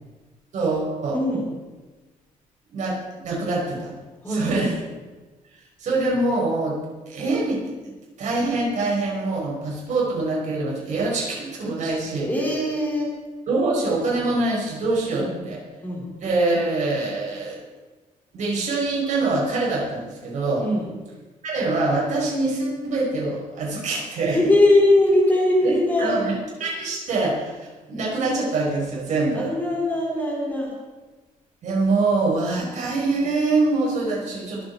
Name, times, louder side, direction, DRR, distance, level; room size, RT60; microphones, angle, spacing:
voice 1, 0.5-1.2 2.7-3.9 4.3-4.8 5.8-6.8 7.1-7.6 8.2-12.3 13.5-15.6 16.2-17.6 18.3-20.6 21.4-24.4 25.6-26.3 26.6-29.5 31.6-34.6, right 2 dB, 60° right, -3 dB, 5.6 m, -24 dB
voice 2, 1.1-1.4 4.2-4.7 12.2-13.1 15.2-15.4 15.8-16.0 20.6-20.9 24.3-26.2 29.3-30.7 32.5-32.6, left 1 dB, 10° left, -3 dB, 4.0 m, -21 dB
23.5 x 8.4 x 4.8 m, 1.2 s
cardioid pair, 150°, 14 cm